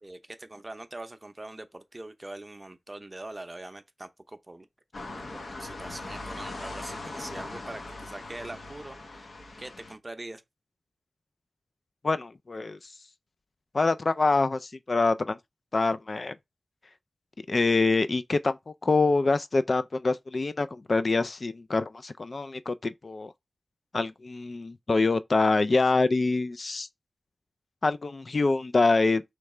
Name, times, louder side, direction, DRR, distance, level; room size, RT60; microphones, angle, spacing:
voice 1, 0.0-4.7 5.1-9.3 9.6-10.4, right 2 dB, 25° right, 0.6 m, -43 dB
sound 1, 4.9-9.9, left 2 dB, 70° left, 0.9 m, -40 dB
voice 2, 12.0-12.8 13.7-15.4 15.7-16.3 17.5-18.6 18.8-23.3 23.9-26.9 27.8-29.2, left 3 dB, 55° left, 0.3 m, -25 dB
3.3 x 3.1 x 4.7 m
wide cardioid pair, 70°, 0 cm